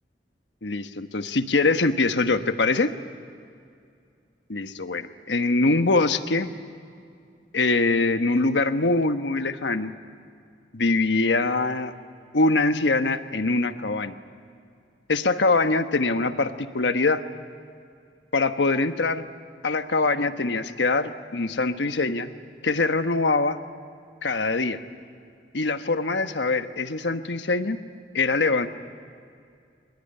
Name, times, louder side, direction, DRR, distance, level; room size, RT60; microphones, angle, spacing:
voice 1, 0.6-2.9 4.5-6.5 7.5-9.9 10.7-11.9 12.3-14.1 15.1-17.2 18.3-19.2 19.6-22.3 22.6-23.6 24.2-24.8 25.5-27.8 28.1-28.7, left 3 dB, 85° left, 9 dB, 1.2 m, -23 dB
24.0 x 21.5 x 9.9 m, 2.3 s
head